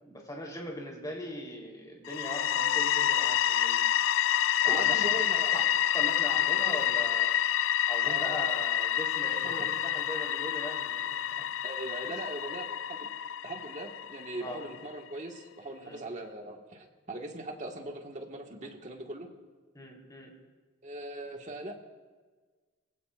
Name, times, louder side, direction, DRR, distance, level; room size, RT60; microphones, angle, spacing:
voice 1, 0.0-3.8 4.6-5.0 5.5-5.6 5.9-7.3 7.9-11.4 12.0-12.1 14.4-14.6 15.8-16.0 18.6-18.7 19.7-20.3, equal, 20° left, -2 dB, 3.7 m, -40 dB
sound 1, 2.1-14.8, left 10 dB, 65° left, 0.3 m, -28 dB
voice 2, 4.7-5.6 8.0-8.6 11.6-13.1 13.4-19.3 20.8-21.7, right 1 dB, 40° right, 1 dB, 1.7 m, -40 dB
24.0 x 16.0 x 2.5 m, 1.4 s
head